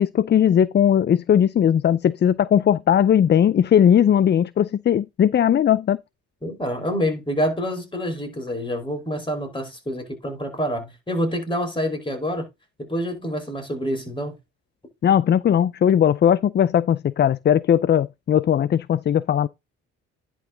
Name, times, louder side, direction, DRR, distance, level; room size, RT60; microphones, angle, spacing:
voice 1, 0.0-6.0 15.0-19.5, left 9 dB, 35° left, 0.4 m, -18 dB
voice 2, 6.4-12.5 12.8-14.4, equal, 15° left, 5.0 m, -27 dB
10.5 x 4.6 x 3.9 m
cardioid pair, 90°, 30 cm